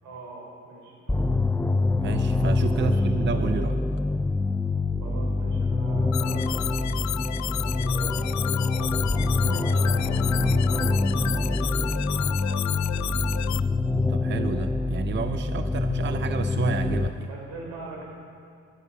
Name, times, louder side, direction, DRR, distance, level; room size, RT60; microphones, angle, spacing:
voice 1, 0.0-1.2 2.7-3.1 5.0-6.9 7.7-9.0 9.4-13.4 17.2-18.1, right 3 dB, 85° right, -2 dB, 4.8 m, -42 dB
sound 1, 1.1-17.1, left 3 dB, 10° left, 0.4 m, -25 dB
voice 2, 2.0-3.8 9.4-9.6 14.1-17.3, right 6 dB, 40° right, 9 dB, 0.6 m, -30 dB
sound 2, 6.1-13.6, left 14 dB, 65° left, 0.5 m, -32 dB
16.5 x 12.0 x 5.4 m, 2.3 s
cardioid pair, 90°, 30 cm